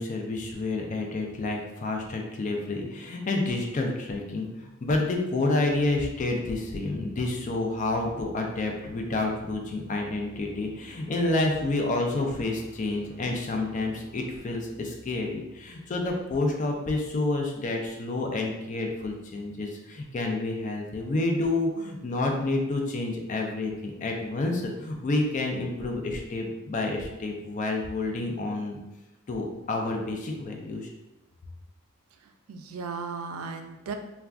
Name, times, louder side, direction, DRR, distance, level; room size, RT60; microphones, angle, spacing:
voice 1, 0.0-28.8 29.3-30.9, left 2 dB, 35° left, 1 dB, 0.3 m, -29 dB
sound 1, 5.3-17.1, equal, 15° left, 0.8 m, -52 dB
voice 2, 32.1-33.9, right 5 dB, 90° right, 6 dB, 0.4 m, -36 dB
2.3 x 2.3 x 3.4 m, 1.0 s
head